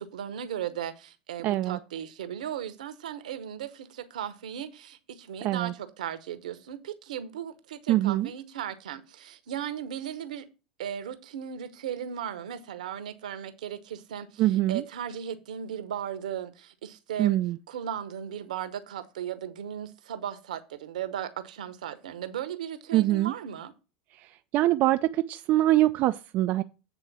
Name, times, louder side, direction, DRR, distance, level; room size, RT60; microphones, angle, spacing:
voice 1, 0.0-10.4 10.8-14.4 14.7-17.4 17.7-23.7, right 9 dB, 70° right, 0.9 m, -36 dB
voice 2, 1.4-1.8 5.4-5.7 7.9-8.3 14.4-14.8 17.2-17.6 22.9-23.3 24.2-24.3 24.5-26.6, right 15 dB, 45° right, 0.3 m, -24 dB
8.1 x 3.8 x 5.9 m
figure-of-eight pair, 85°, 4 cm